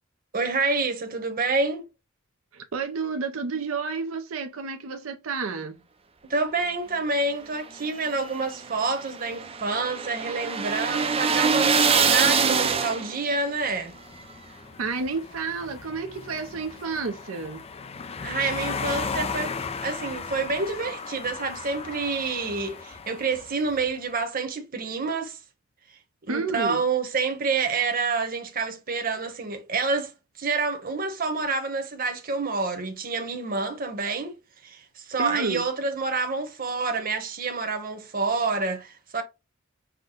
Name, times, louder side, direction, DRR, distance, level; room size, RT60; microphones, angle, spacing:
voice 1, 0.3-1.9 6.3-14.0 18.2-25.4 26.2-30.1 30.4-34.4 34.6-39.2, right 4 dB, 45° right, 1.0 m, -28 dB
voice 2, 2.5-5.7 14.8-17.6 26.3-26.8 35.2-35.6, right 4 dB, 90° right, 0.6 m, -30 dB
sound 1, 7.8-13.3, right 5 dB, 30° right, 0.5 m, -24 dB
sound 2, 13.6-23.9, left 5 dB, 30° left, 0.4 m, -36 dB
5.8 x 2.2 x 3.7 m
head